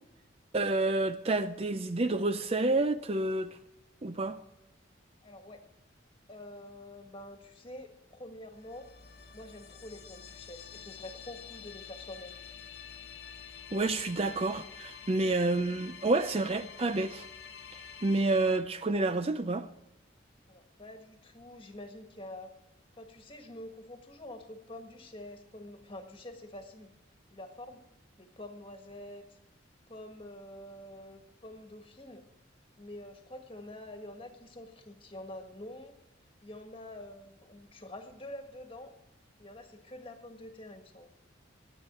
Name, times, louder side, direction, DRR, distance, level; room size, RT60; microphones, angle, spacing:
voice 1, 0.5-3.6 4.0-4.4 13.7-17.3 18.0-19.7, right 2 dB, 30° right, 0.5 m, -29 dB
voice 2, 5.2-5.6 6.3-8.9 9.3-12.4 20.5-22.5 22.9-26.9 27.3-27.8 28.2-29.4 29.9-32.2 32.8-35.9 36.4-38.9 39.4-41.1, left 1 dB, 25° left, 1.5 m, -47 dB
sound 1, 8.5-18.6, left 7 dB, 55° left, 1.2 m, -48 dB
13.0 x 9.1 x 8.7 m
head